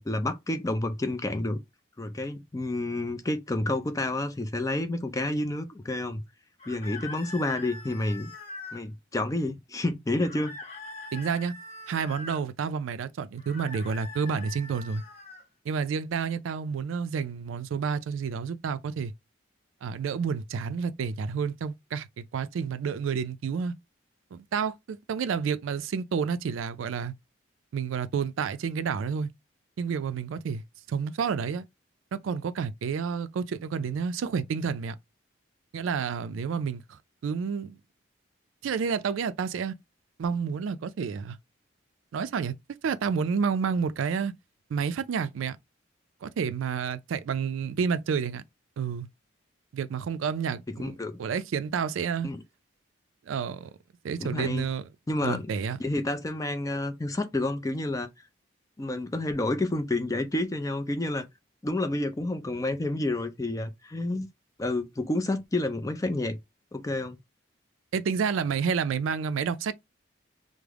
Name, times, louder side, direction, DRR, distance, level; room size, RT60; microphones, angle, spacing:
voice 1, 0.0-1.6 2.0-6.2 6.7-8.3 8.7-10.6 50.7-51.2 52.2-52.4 54.2-54.7 55.1-55.5 55.8-58.1 58.8-61.2 61.6-64.3 64.6-66.4 66.7-67.2, left 2 dB, 15° left, 0.4 m, -29 dB
sound 1, 6.6-8.8 10.2-12.4 13.4-15.4, left 3 dB, 30° left, 1.0 m, -43 dB
voice 2, 11.1-11.5 11.9-15.0 15.7-19.1 19.8-23.7 24.3-27.1 27.7-29.3 29.8-31.6 32.1-35.0 35.7-37.8 38.6-39.7 40.2-41.4 42.1-42.5 42.8-44.3 44.7-45.6 46.2-48.4 48.8-49.1 49.7-52.3 53.3-53.7 54.0-54.9 55.2-55.8 67.9-69.7, right 6 dB, 80° right, 0.3 m, -30 dB
3.3 x 2.0 x 3.5 m
head